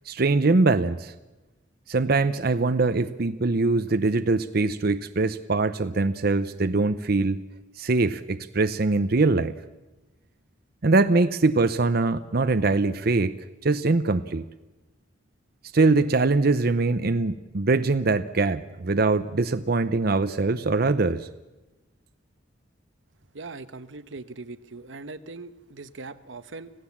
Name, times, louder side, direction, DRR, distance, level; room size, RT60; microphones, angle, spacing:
voice 1, 0.1-1.1 1.9-7.4 7.8-9.5 10.8-13.4 13.6-14.4 15.7-21.3, right 3 dB, 55° right, 10 dB, 0.7 m, -22 dB
voice 2, 23.3-26.7, right 3 dB, 85° right, 11 dB, 1.1 m, -40 dB
26.0 x 16.5 x 7.3 m, 1.1 s
head